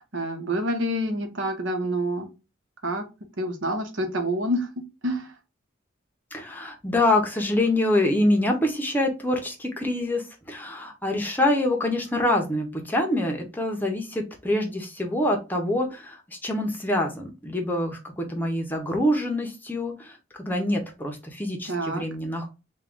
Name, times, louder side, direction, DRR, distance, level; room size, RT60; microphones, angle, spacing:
voice 1, 0.0-2.3 2.8-3.0 3.4-5.3 21.7-22.0, right 1 dB, 80° right, 5 dB, 0.9 m, -27 dB
voice 2, 6.3-22.5, left 1 dB, 10° left, 2 dB, 0.7 m, -25 dB
3.6 x 2.3 x 3.5 m, 0.28 s
head